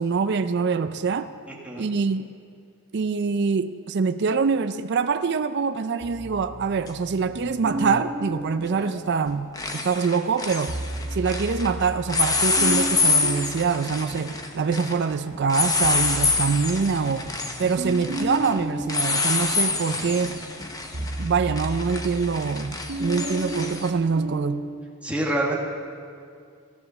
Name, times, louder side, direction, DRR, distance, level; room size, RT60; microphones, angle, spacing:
voice 1, 0.0-1.3 1.8-2.3 2.9-10.8 11.1-17.3 17.6-20.3 21.2-24.6, right 5 dB, 50° right, 10 dB, 0.4 m, -25 dB
voice 2, 1.5-1.9 25.0-25.6, right 1 dB, 5° right, -3 dB, 1.7 m, -26 dB
sound 1, 6.0-9.5 10.5-14.9 15.3-24.6, right 1 dB, 75° right, 1.4 m, -34 dB
sound 2, 6.9-7.0 8.7-9.0 9.3-11.7 12.1-23.9, left 3 dB, 15° left, 0.9 m, -27 dB
15.0 x 10.0 x 7.0 m, 2.3 s
head